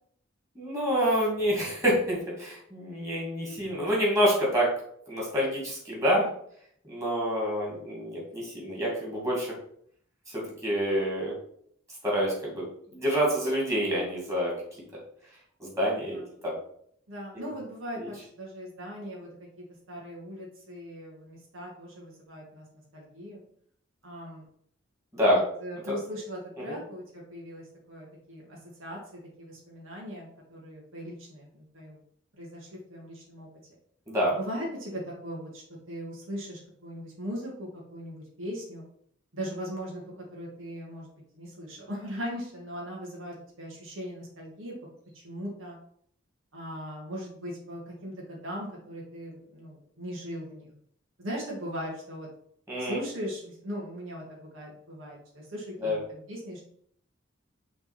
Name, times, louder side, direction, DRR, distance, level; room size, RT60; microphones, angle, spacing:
voice 1, 0.5-4.7 5.1-6.2 6.9-9.5 10.3-11.3 12.0-12.6 12.9-14.5 15.6-16.5 17.3-17.5 18.0-18.1 25.1-25.4 25.9-26.0 26.7-26.8 34.1-34.3 52.7-53.0 55.8-56.0, equal, 15° right, -5 dB, 2.7 m, -27 dB
voice 2, 15.9-16.3 17.1-22.6 22.9-23.4 24.0-24.4 25.3-32.0 32.4-33.5 34.4-38.9 39.3-44.7 45.1-45.8 46.5-50.7 51.2-52.3 52.8-56.6, equal, 75° right, -3 dB, 1.9 m, -39 dB
5.9 x 3.7 x 5.8 m, 0.66 s
head